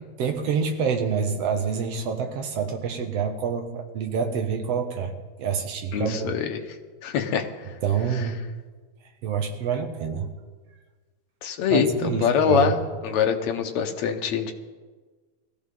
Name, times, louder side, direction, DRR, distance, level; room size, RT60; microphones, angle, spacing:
voice 1, 0.2-5.1 5.4-6.3 7.8-8.4 9.2-10.3 11.7-12.8, right 6 dB, 60° right, 4 dB, 2.3 m, -27 dB
voice 2, 5.9-6.6 7.0-7.5 11.4-12.8 13.0-14.5, left 7 dB, 70° left, 5 dB, 2.3 m, -24 dB
20.5 x 15.0 x 3.9 m, 1.4 s
omnidirectional pair, 3.4 m